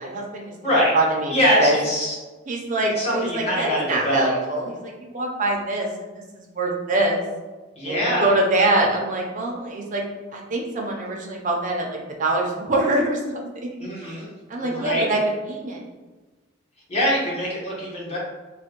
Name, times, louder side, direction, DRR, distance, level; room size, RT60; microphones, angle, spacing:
voice 1, 0.0-0.5 0.9-1.8 2.5-7.2 7.8-10.0 10.3-13.4 14.0-14.2 14.5-15.2 15.5-15.8, right 2 dB, 40° right, 0 dB, 0.6 m, -24 dB
voice 2, 0.6-0.9 1.3-2.1 3.0-4.3 7.7-8.3 13.8-14.3 14.6-15.0 16.9-18.2, equal, 35° left, -6 dB, 1.1 m, -23 dB
3.2 x 2.2 x 2.9 m, 1.2 s
head